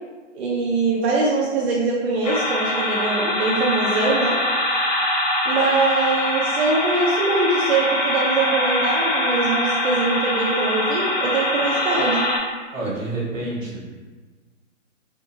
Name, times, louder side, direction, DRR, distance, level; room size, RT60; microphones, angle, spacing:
voice 1, 0.3-4.4 5.5-12.3, right 3 dB, 55° right, -4 dB, 0.6 m, -22 dB
sound 1, 2.2-12.4, left 1 dB, 35° left, 0.5 m, -23 dB
voice 2, 12.7-13.9, right 2 dB, 85° right, -4 dB, 1.3 m, -28 dB
2.6 x 2.6 x 2.6 m, 1.4 s
figure-of-eight pair, 130°, 38 cm